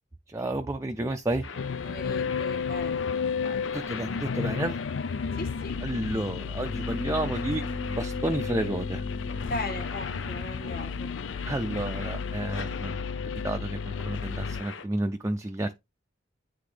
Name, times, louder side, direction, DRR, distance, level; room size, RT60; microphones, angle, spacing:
voice 1, 0.3-1.5 3.7-4.8 5.8-9.0 11.5-13.0 13.4-15.8, right 1 dB, 15° right, 0.4 m, -31 dB
sound 1, 1.4-14.9, left 5 dB, 85° left, 1.0 m, -42 dB
sound 2, 1.6-14.6, left 5 dB, 70° left, 0.4 m, -32 dB
voice 2, 1.6-3.6 5.4-5.7 9.4-11.1, left 2 dB, 50° left, 1.5 m, -38 dB
Bass guitar, 6.7-13.0, left 1 dB, 30° left, 0.8 m, -41 dB
9.7 x 3.7 x 3.3 m
head